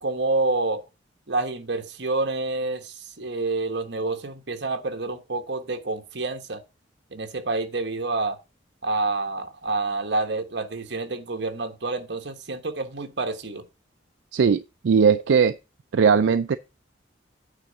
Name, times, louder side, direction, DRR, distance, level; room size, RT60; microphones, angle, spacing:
voice 1, 0.0-0.8 1.3-6.6 7.1-8.4 8.8-13.6, right 3 dB, 65° right, 1.2 m, -28 dB
voice 2, 14.3-15.6 15.9-16.6, right 6 dB, 80° right, 0.4 m, -19 dB
9.0 x 3.8 x 6.4 m
head